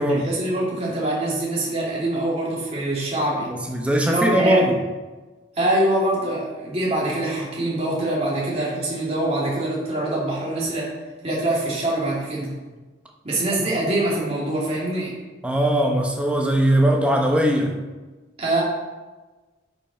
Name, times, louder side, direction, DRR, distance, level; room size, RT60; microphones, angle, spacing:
voice 1, 0.1-3.5 4.0-4.7 5.6-10.9 11.2-12.5 13.2-15.1 18.4-18.6, right 1 dB, 30° right, -6 dB, 2.8 m, -24 dB
voice 2, 3.5-4.8 15.4-17.7, right 1 dB, 5° right, 1 dB, 0.9 m, -20 dB
10.0 x 5.5 x 4.4 m, 1.2 s
head